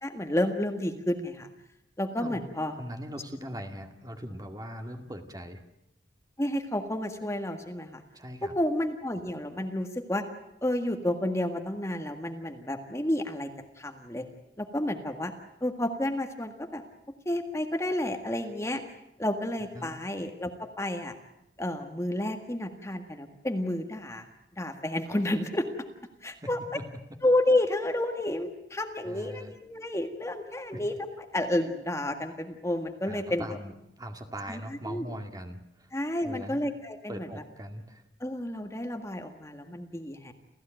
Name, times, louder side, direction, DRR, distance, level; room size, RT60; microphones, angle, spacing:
voice 1, 0.0-1.5 2.0-2.8 6.4-8.0 8.4-10.2 10.6-13.5 13.8-14.2 14.6-15.3 15.6-16.8 17.3-18.8 19.2-21.1 21.6-24.3 24.6-25.7 26.2-26.6 27.2-33.5 34.5-35.1 35.9-37.3 38.2-40.3, left 1 dB, 15° left, 5 dB, 1.7 m, -30 dB
voice 2, 2.8-5.6 8.1-8.5 19.7-19.9 26.4-26.8 29.0-29.5 30.7-30.8 33.1-35.9 36.2-36.6 37.1-38.0, equal, 20° right, 5 dB, 2.1 m, -40 dB
29.0 x 15.0 x 9.1 m, 0.86 s
head